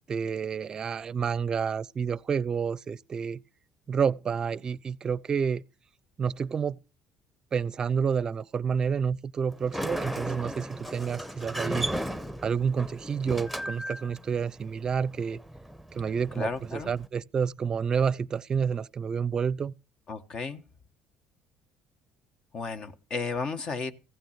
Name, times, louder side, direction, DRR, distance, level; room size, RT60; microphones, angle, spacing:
voice 1, 0.1-3.4 3.9-5.6 6.2-6.8 7.5-11.9 12.4-15.4 15.9-19.7, right 6 dB, 35° right, 0.6 m, -29 dB
Sliding door, 9.5-17.1, equal, 5° left, 1.0 m, -36 dB
voice 2, 16.3-16.9 20.1-20.6 22.5-23.9, left 4 dB, 45° left, 1.3 m, -33 dB
15.5 x 9.2 x 5.8 m
cardioid pair, 100°, 2 cm